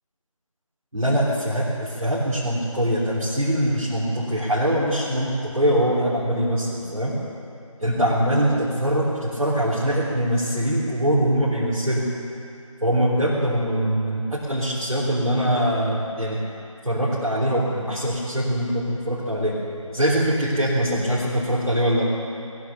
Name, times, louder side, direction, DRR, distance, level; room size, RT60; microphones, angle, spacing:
voice 1, 0.9-7.1 7.8-12.0 12.8-16.4 16.8-19.5 19.9-22.1, equal, 90° right, -9 dB, 3.9 m, -23 dB
19.0 x 10.5 x 6.9 m, 2.6 s
figure-of-eight pair, 165°, 18 cm